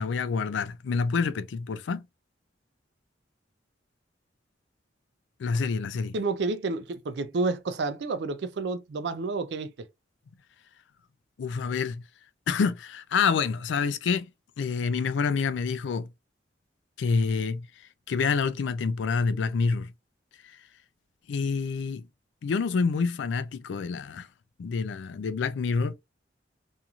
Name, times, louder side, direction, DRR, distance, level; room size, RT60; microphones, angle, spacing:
voice 1, 0.0-2.0 5.4-6.1 11.4-12.0 12.5-14.3 14.6-16.1 17.0-17.7 18.1-19.9 21.3-22.1 22.4-24.3 24.6-25.9, left 5 dB, 85° left, 0.4 m, -27 dB
voice 2, 6.1-9.9, right 3 dB, 70° right, 0.4 m, -30 dB
2.6 x 2.4 x 2.8 m
head